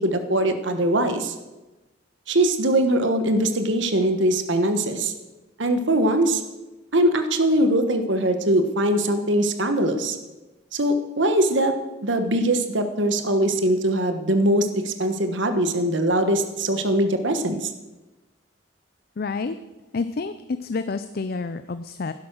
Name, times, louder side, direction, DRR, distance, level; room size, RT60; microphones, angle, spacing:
voice 1, 0.0-1.3 2.3-5.1 5.6-6.4 6.9-10.2 10.7-11.7 12.0-17.7, right 1 dB, 65° right, 8 dB, 1.3 m, -21 dB
voice 2, 19.2-19.5 19.9-22.1, left 4 dB, 50° left, 11 dB, 0.5 m, -29 dB
11.5 x 11.0 x 6.1 m, 1.1 s
head